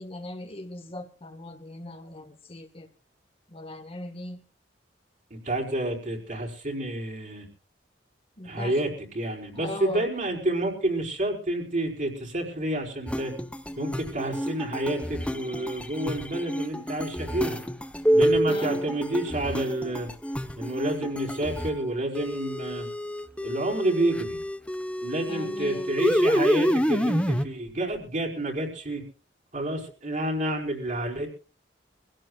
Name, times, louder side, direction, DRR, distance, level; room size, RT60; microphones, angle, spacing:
voice 1, 0.0-2.9 3.5-4.4 8.4-8.8 9.5-10.0 18.5-18.8 25.3-25.9, left 1 dB, 35° left, 1.6 m, -39 dB
voice 2, 5.3-7.5 8.4-13.3 13.8-17.6 18.1-20.1 20.5-22.9 23.4-24.4 25.0-29.0 29.5-31.3, right 1 dB, 45° right, 4.9 m, -29 dB
sound 1, 13.1-21.7 22.1-27.4, equal, 5° left, 1.0 m, -28 dB
25.0 x 16.5 x 2.4 m
head